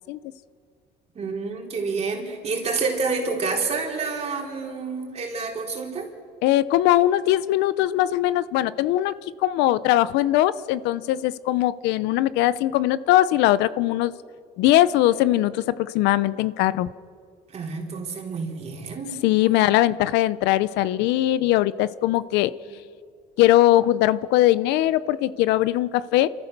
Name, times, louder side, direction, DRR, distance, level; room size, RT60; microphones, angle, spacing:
voice 1, 1.1-6.1 17.5-19.6 22.6-22.7, right 4 dB, 40° right, 0 dB, 4.2 m, -29 dB
voice 2, 6.4-9.1 9.4-14.1 14.6-16.9 19.2-22.5 23.4-26.3, left 14 dB, 90° left, 17 dB, 0.7 m, -20 dB
29.0 x 14.0 x 6.6 m, 2.2 s
cardioid pair, 125°, 17 cm